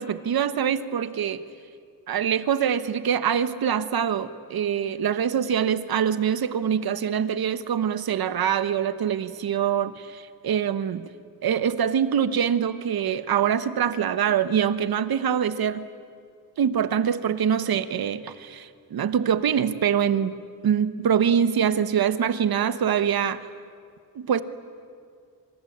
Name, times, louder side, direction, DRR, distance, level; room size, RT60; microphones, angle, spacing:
voice 1, 0.0-1.4 2.1-11.0 11.4-15.9 16.6-20.3 20.6-23.4 24.1-24.4, right 8 dB, 65° right, 13 dB, 1.3 m, -24 dB
27.0 x 25.0 x 8.7 m, 2.3 s
wide cardioid pair, 170°, 39 cm